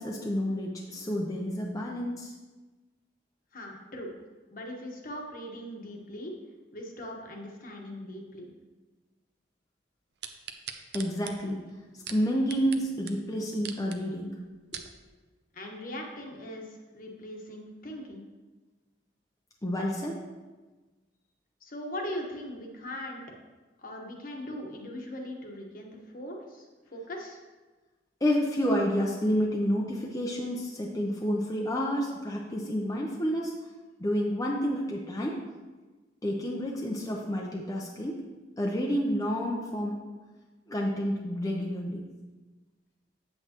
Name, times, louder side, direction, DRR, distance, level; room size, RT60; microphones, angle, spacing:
voice 1, 0.0-2.3 10.9-11.6 12.1-14.3 14.7-14.8 19.6-20.2 28.2-33.5 34.0-35.4 36.2-38.2 38.6-40.0 40.7-42.0, equal, 20° left, -2 dB, 0.6 m, -29 dB
voice 2, 3.5-4.1 4.5-6.3 6.7-8.5 15.5-18.3 21.6-23.2 23.8-26.7 26.9-27.4, left 1 dB, 50° left, 1 dB, 1.2 m, -40 dB
sound 1, 10.2-12.8 13.1-13.2 13.5-14.0 14.5-14.9 15.5-15.6, right 8 dB, 65° right, 0.6 m, -41 dB
7.9 x 7.7 x 2.9 m, 1.3 s
head